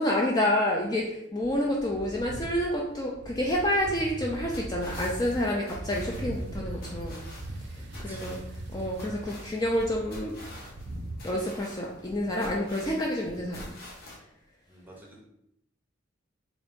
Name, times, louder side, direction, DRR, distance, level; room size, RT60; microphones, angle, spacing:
voice 1, 0.0-7.2 8.0-8.4 8.7-10.3 11.2-13.7, left 1 dB, 20° left, -2 dB, 0.4 m, -28 dB
sound 1, 1.4-11.2, right 1 dB, 55° right, 0.5 m, -40 dB
sound 2, 3.8-14.2, left 1 dB, 50° left, 0.9 m, -47 dB
voice 2, 7.8-8.4 14.7-15.2, right 1 dB, 10° right, -2 dB, 0.7 m, -50 dB
3.7 x 2.5 x 3.6 m, 0.81 s
head